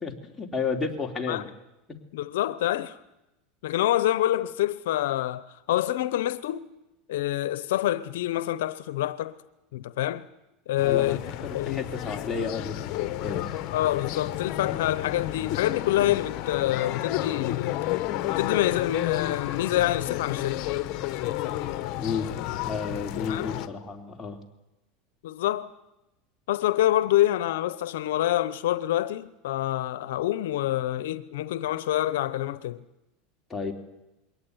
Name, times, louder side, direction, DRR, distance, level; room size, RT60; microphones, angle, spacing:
voice 1, 0.0-1.4 1.9-2.0 10.8-13.5 22.0-22.3 22.6-24.4 33.5-33.7, left 5 dB, 10° left, 3.1 m, -32 dB
voice 2, 2.1-3.0 3.6-5.4 5.7-6.7 7.1-9.4 9.7-10.2 10.7-11.2 11.5-11.9 13.7-17.8 18.4-20.6 23.3-23.5 25.2-25.7 26.5-32.8, left 13 dB, 80° left, 0.8 m, -26 dB
sound 1, 10.8-23.7, left 14 dB, 55° left, 1.2 m, -31 dB
22.0 x 18.0 x 9.5 m
supercardioid pair, 125°, 0 cm